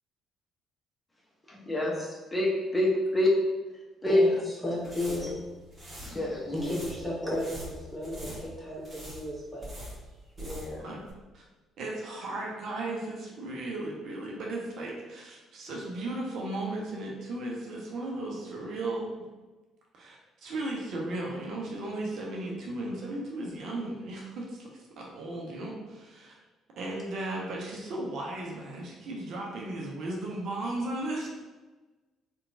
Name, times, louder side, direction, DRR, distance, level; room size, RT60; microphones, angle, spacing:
voice 1, 1.5-2.9 3.1-3.3 4.0-4.2 5.1-5.3 6.0-6.7 7.2-7.3 10.4-10.9, left 1 dB, 20° left, -4 dB, 0.8 m, -28 dB
voice 2, 4.0-5.4 6.5-9.9, left 1 dB, 5° left, -7 dB, 1.2 m, -34 dB
sound 1, 4.7-10.8 11.1-11.2, equal, 30° right, 1.0 m, -44 dB
voice 3, 11.8-19.1 19.9-26.4 26.8-31.3, right 2 dB, 60° right, -2 dB, 0.5 m, -36 dB
2.8 x 2.2 x 2.5 m, 1.2 s
hypercardioid pair, 50°, 0 cm